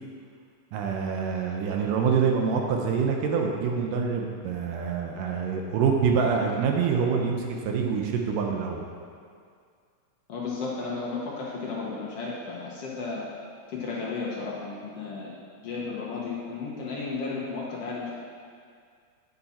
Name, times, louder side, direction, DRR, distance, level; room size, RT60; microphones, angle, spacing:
voice 1, 0.7-8.8, right 6 dB, 80° right, 1 dB, 2.3 m, -26 dB
voice 2, 10.3-13.3 13.7-15.3 15.6-18.1, left 4 dB, 65° left, -5 dB, 1.6 m, -33 dB
9.5 x 7.3 x 4.3 m, 2.2 s
omnidirectional pair, 4.0 m